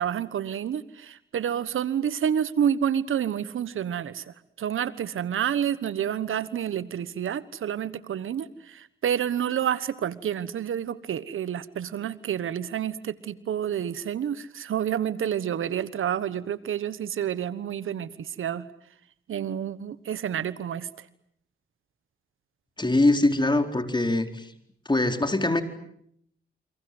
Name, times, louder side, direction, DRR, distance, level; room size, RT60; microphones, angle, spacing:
voice 1, 0.0-18.7 19.3-21.1, right 9 dB, 80° right, 16 dB, 1.2 m, -29 dB
voice 2, 22.8-24.4 24.9-25.6, left 2 dB, 20° left, 6 dB, 4.4 m, -22 dB
29.0 x 25.5 x 7.9 m, 0.71 s
cardioid pair, 60°, 21 cm